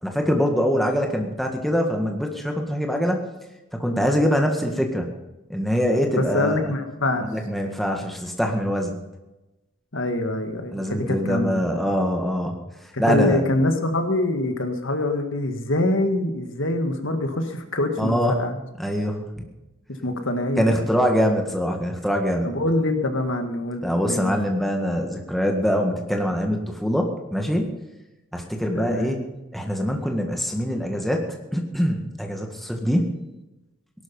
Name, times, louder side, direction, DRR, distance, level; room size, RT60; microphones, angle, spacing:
voice 1, 0.0-3.3 3.7-5.1 5.5-6.7 7.2-9.0 10.7-12.6 13.0-13.4 18.0-18.4 18.8-19.3 20.6-22.6 23.8-27.7 28.3-29.2 29.5-33.2, equal, ahead, 2 dB, 1.9 m, -24 dB
voice 2, 6.1-7.3 9.9-11.9 12.9-18.6 20.0-20.9 22.4-24.3 28.7-29.2, left 1 dB, 60° left, 6 dB, 1.7 m, -25 dB
18.0 x 12.0 x 5.5 m, 1.0 s
head